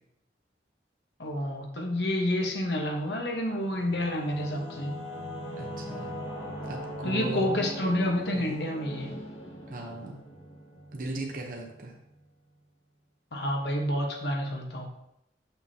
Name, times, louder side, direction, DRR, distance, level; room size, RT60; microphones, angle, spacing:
voice 1, 1.2-4.9 7.0-9.1 13.3-14.9, left 1 dB, 70° left, 2 dB, 1.1 m, -29 dB
Singing / Musical instrument, 3.1-12.3, equal, 90° left, 2.1 m, -41 dB
voice 2, 5.6-6.1 6.7-7.7 8.3-8.6 9.7-10.2 10.9-11.9, right 2 dB, 50° right, 0 dB, 0.8 m, -37 dB
7.0 x 5.8 x 2.8 m, 0.82 s
head